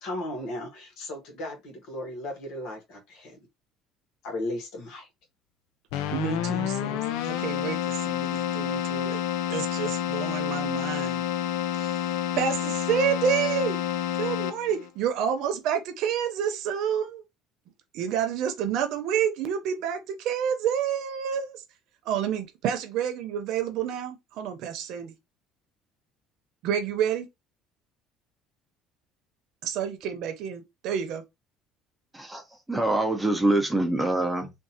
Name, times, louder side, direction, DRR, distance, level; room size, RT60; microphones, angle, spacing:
voice 1, 0.0-3.4 4.2-5.1, left 1 dB, 65° left, 1.4 m, -36 dB
Keyboard (musical), 5.9-14.9, left 11 dB, 90° left, 0.4 m, -29 dB
voice 2, 6.1-9.2 9.5-11.2 11.8-12.0 12.3-13.8 14.2-17.2 17.9-21.6 22.0-25.2 26.6-27.3 29.6-31.2, right 8 dB, 65° right, 0.9 m, -29 dB
voice 3, 32.7-34.5, right 2 dB, 5° right, 0.7 m, -24 dB
3.7 x 2.6 x 2.9 m
cardioid pair, 150°, 0 cm